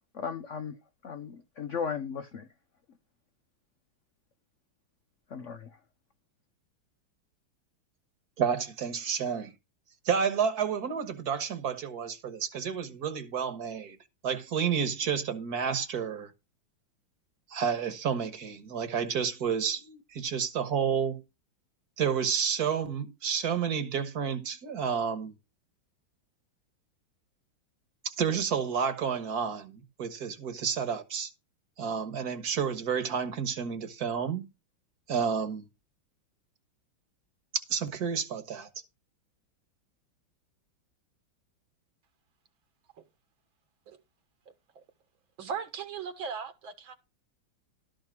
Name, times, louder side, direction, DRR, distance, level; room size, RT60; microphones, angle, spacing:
voice 1, 0.1-0.8 1.0-2.5 5.3-5.7, left 6 dB, 65° left, 0.7 m, -36 dB
voice 2, 8.4-9.5 10.0-14.0 14.2-16.3 17.5-21.2 22.0-25.3 28.0-31.3 31.8-34.5 35.1-35.7 37.5-38.7, right 7 dB, 50° right, 1.7 m, -30 dB
voice 3, 45.4-46.9, right 6 dB, 75° right, 2.4 m, -38 dB
12.5 x 5.1 x 6.0 m
omnidirectional pair, 2.2 m